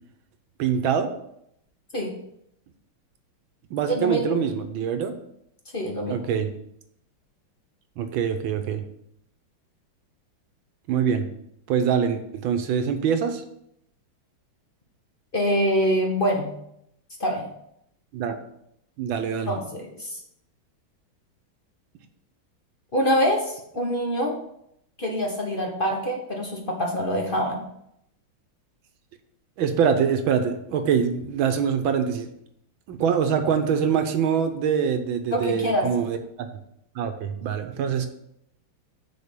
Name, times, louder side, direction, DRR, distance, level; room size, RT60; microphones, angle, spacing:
voice 1, 0.6-1.1 3.7-5.1 6.1-6.5 8.0-8.8 10.9-11.3 11.7-13.4 18.1-18.4 19.0-19.5 29.6-32.3 32.9-36.5 36.9-38.1, right 7 dB, 75° right, 8 dB, 1.5 m, -24 dB
voice 2, 3.9-4.4 5.7-6.2 15.3-16.5 17.2-17.5 19.5-20.2 22.9-24.4 25.0-27.6 35.3-35.9, equal, 35° left, 1 dB, 1.0 m, -25 dB
6.6 x 5.0 x 6.8 m, 0.76 s
omnidirectional pair, 2.3 m